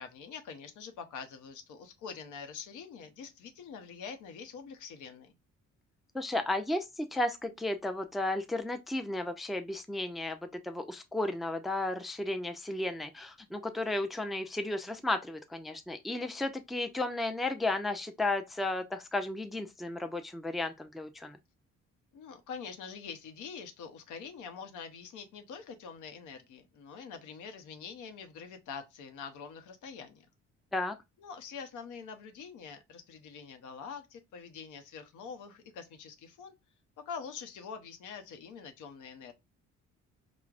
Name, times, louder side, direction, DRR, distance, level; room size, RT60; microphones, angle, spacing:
voice 1, 0.0-5.3 22.1-30.3 31.2-36.5 37.1-39.3, left 6 dB, 80° left, 0.7 m, -45 dB
voice 2, 6.1-21.4 30.7-31.0, left 2 dB, ahead, 0.3 m, -34 dB
4.6 x 2.0 x 2.4 m
cardioid pair, 90°, 30 cm